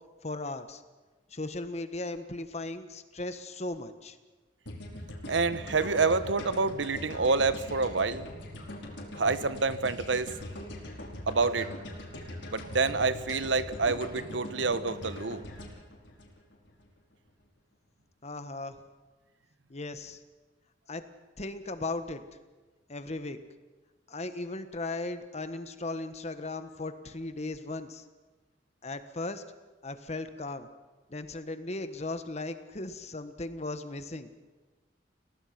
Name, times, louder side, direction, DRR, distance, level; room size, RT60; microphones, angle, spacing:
voice 1, 0.2-0.8 1.3-4.2 18.2-18.7 19.7-20.2 20.9-21.0 21.4-22.2 22.9-23.4 24.1-28.0 28.8-29.4 29.8-30.7 31.1-34.3, left 2 dB, 35° left, 9 dB, 1.4 m, -37 dB
sound 1, 4.6-16.9, left 1 dB, 80° left, 5.1 m, -42 dB
voice 2, 5.3-8.3 9.2-10.3 11.3-11.7 12.5-15.4, right 4 dB, 85° right, 13 dB, 1.1 m, -27 dB
29.0 x 18.0 x 6.0 m, 1.2 s
head